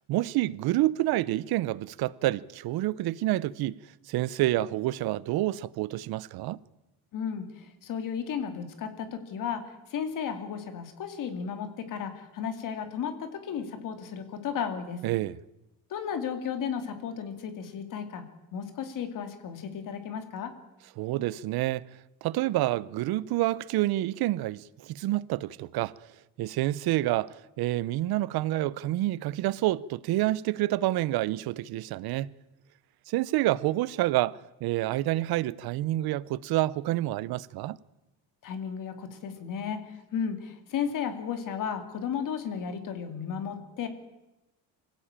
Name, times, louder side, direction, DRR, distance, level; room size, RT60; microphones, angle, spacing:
voice 1, 0.1-3.8 4.1-6.6 15.0-15.4 21.0-21.8 22.2-25.9 26.4-32.3 33.1-37.8, right 16 dB, 60° right, 0.8 m, -28 dB
voice 2, 7.1-15.0 15.9-18.2 18.5-20.5 38.4-43.9, left 7 dB, 50° left, 2.6 m, -34 dB
25.5 x 16.0 x 8.9 m
cardioid pair, 175°, 41 cm